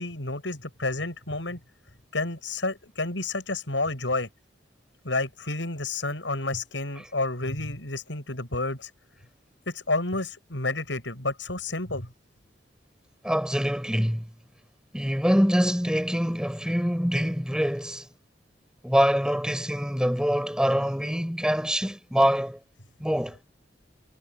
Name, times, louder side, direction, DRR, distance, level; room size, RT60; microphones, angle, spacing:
voice 1, 0.0-1.6 2.1-4.3 5.0-8.9 9.7-12.1, left 2 dB, 90° left, 7.2 m, -30 dB
voice 2, 13.2-14.3 14.9-18.1 18.8-22.6 23.0-23.4, equal, 5° right, 7.4 m, -24 dB
head